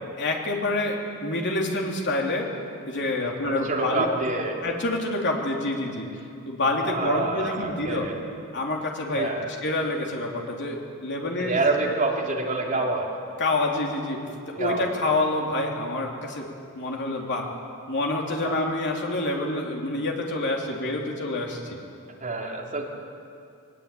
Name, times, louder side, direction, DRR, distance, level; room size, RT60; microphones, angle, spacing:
voice 1, 0.2-2.5 2.8-4.1 4.6-6.1 6.4-8.1 8.5-9.3 9.6-11.9 12.7-12.8 13.4-16.5 16.7-17.5 17.9-21.8, left 2 dB, 55° left, 0 dB, 3.2 m, -27 dB
voice 2, 3.2-4.6 6.8-8.2 9.1-9.5 11.4-13.1 14.5-15.2 18.4-18.7 22.2-22.8, right 3 dB, 35° right, -1 dB, 3.1 m, -27 dB
21.0 x 19.5 x 8.6 m, 2.5 s
head